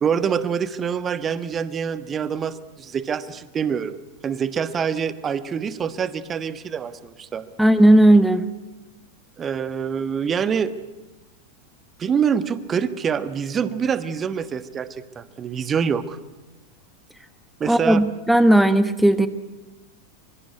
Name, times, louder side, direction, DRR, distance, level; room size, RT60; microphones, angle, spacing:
voice 1, 0.0-4.0 4.2-7.5 9.4-10.7 12.0-14.9 15.1-16.2 17.6-18.0, right 7 dB, 20° right, 13 dB, 1.3 m, -25 dB
voice 2, 7.6-8.4 17.7-19.3, right 1 dB, ahead, 12 dB, 1.1 m, -15 dB
25.0 x 24.0 x 9.6 m, 1.1 s
figure-of-eight pair, 90°, 0 cm